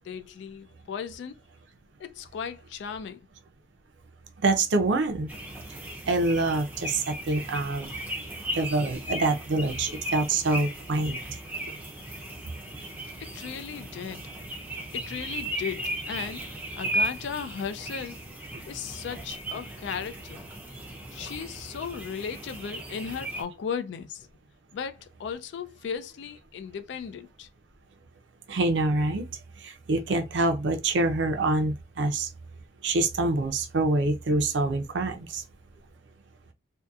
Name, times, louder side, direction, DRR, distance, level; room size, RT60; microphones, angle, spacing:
voice 1, 0.0-1.4 2.0-3.2 13.2-14.3 14.9-18.2 18.7-20.5 21.1-24.3 24.7-27.5, left 7 dB, 75° left, 0.3 m, -36 dB
voice 2, 4.4-5.3 5.7-5.8 6.1-7.9 8.6-11.2 28.5-29.3 29.6-32.3 32.8-35.4, right 2 dB, 80° right, 0.5 m, -26 dB
sound 1, 5.3-23.4, right 1 dB, 10° right, 0.4 m, -36 dB
2.7 x 2.2 x 2.3 m
head